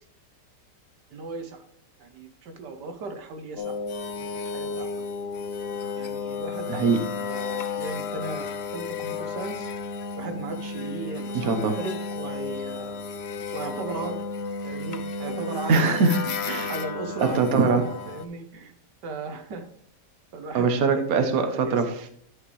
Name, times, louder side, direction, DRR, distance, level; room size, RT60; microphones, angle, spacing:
voice 1, 1.1-1.6 2.0-3.8 4.2-4.9 5.9-9.7 10.2-13.1 13.5-14.3 14.6-15.9 16.5-18.7 19.0-19.6 20.3-21.9, right 3 dB, 80° right, 6 dB, 1.7 m, -37 dB
sound 1, 3.6-18.2, left 4 dB, 55° left, 0.8 m, -33 dB
voice 2, 11.3-11.7 15.7-16.7 17.2-17.8 20.5-22.1, right 4 dB, 60° right, 6 dB, 1.5 m, -22 dB
11.0 x 5.7 x 3.3 m, 0.66 s
omnidirectional pair, 1.8 m